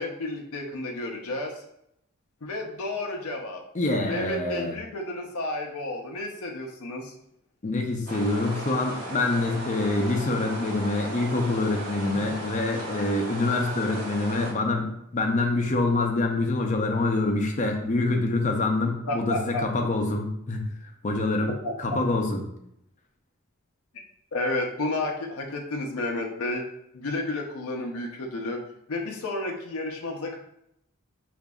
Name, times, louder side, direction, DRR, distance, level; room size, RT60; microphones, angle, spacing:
voice 1, 0.0-1.5 2.4-3.6 4.1-7.1 19.1-19.9 21.6-21.7 24.3-26.6 26.9-28.6 28.9-30.4, left 2 dB, 80° left, 1 dB, 0.6 m, -31 dB
voice 2, 3.7-4.8 7.6-21.5 21.8-22.4, left 2 dB, 35° left, 3 dB, 0.5 m, -26 dB
sound 1, 8.1-14.5, right 1 dB, 90° right, 1.0 m, -36 dB
5.0 x 2.5 x 2.3 m, 0.76 s
head